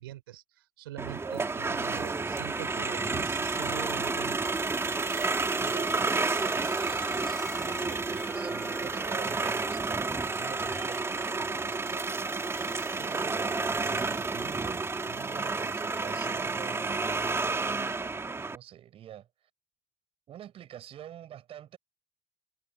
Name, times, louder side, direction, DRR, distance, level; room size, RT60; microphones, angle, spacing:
voice 1, 0.0-4.4, right 15 dB, 80° right, 3.7 m, -44 dB
sound 1, 1.0-18.6, right 3 dB, 20° right, 2.4 m, -30 dB
voice 2, 1.2-1.6 5.6-7.2 7.5-9.8 10.2-12.3 13.0-18.0 18.4-19.3 20.3-21.8, right 11 dB, 50° right, 6.2 m, -47 dB
sound 2, 5.1-12.9, equal, ahead, 3.2 m, -47 dB
figure-of-eight pair, 55°, 12 cm